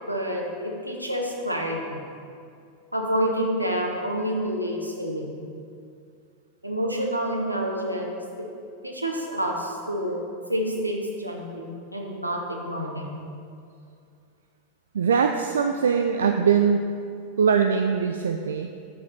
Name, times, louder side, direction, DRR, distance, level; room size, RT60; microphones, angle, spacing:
voice 1, 0.1-2.0 2.9-5.4 6.6-8.5 8.8-10.2 10.5-13.2 16.3-16.5, equal, 90° right, 0 dB, 0.9 m, -28 dB
voice 2, 14.9-16.9 17.4-18.7, right 6 dB, 65° right, 5 dB, 0.3 m, -22 dB
6.6 x 4.9 x 5.7 m, 2.4 s
figure-of-eight pair, 90°, 0 cm